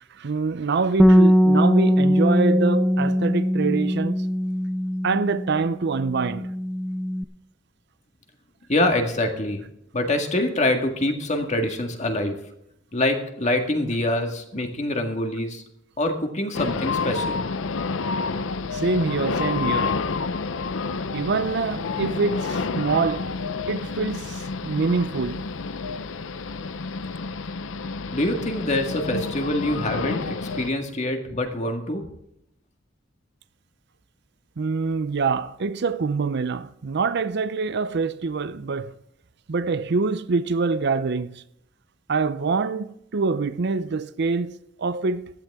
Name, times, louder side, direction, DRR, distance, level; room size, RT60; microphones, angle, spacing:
voice 1, 0.2-4.3 5.0-6.5 18.7-20.0 21.1-23.3 23.7-25.4 34.6-38.9 39.5-41.4 42.1-45.3, right 4 dB, 60° right, 0.6 m, -25 dB
Bass guitar, 1.0-5.7 6.0-7.2, equal, ahead, 0.4 m, -20 dB
voice 2, 8.7-9.7 9.9-12.4 12.9-15.6 16.0-17.4 28.1-32.0, left 1 dB, 40° left, 1.8 m, -25 dB
sound 1, 16.5-30.7, left 4 dB, 75° left, 0.6 m, -29 dB
15.0 x 12.0 x 3.6 m
head